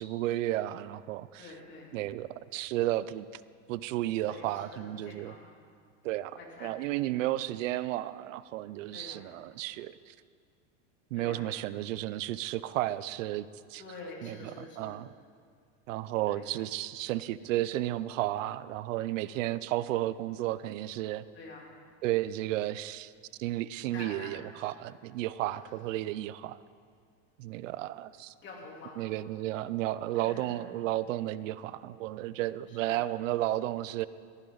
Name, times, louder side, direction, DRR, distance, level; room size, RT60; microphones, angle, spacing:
voice 1, 0.0-1.4 1.9-3.3 3.7-5.3 6.0-10.1 11.1-13.8 14.2-14.3 14.8-15.0 15.9-21.2 22.0-23.1 23.4-26.6 27.4-28.3 29.0-34.1, right 15 dB, 90° right, 17 dB, 0.6 m, -33 dB
voice 2, 1.4-1.9 4.2-5.4 6.3-6.8 8.9-9.2 11.1-11.5 13.8-15.0 16.3-16.4 19.2-19.4 21.3-21.6 23.9-24.5 25.6-25.7 28.4-29.0 30.1-30.6 32.7-33.0, left 3 dB, 30° left, -2 dB, 3.3 m, -47 dB
15.5 x 15.0 x 4.0 m, 2.1 s
supercardioid pair, 140°, 37 cm